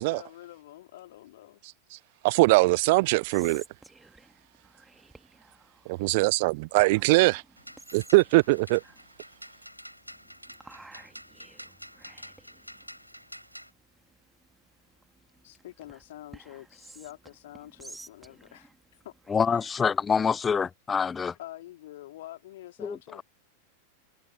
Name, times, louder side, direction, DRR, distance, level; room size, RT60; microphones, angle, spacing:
voice 1, 0.0-1.6 15.4-18.7 19.0-19.1 19.7-19.8 21.4-23.2, left 14 dB, 55° left, 3.6 m, -46 dB
voice 2, 2.2-3.6 5.9-7.4 7.9-8.8, right 23 dB, 50° right, 0.4 m, -21 dB
Whispering, 3.0-20.6, right 2 dB, 5° right, 2.0 m, -54 dB
sound 1, 7.6-13.7, equal, 90° left, 3.7 m, -48 dB
voice 3, 19.3-21.3 22.8-23.0, left 6 dB, 20° left, 0.6 m, -26 dB
figure-of-eight pair, 90°, 0 cm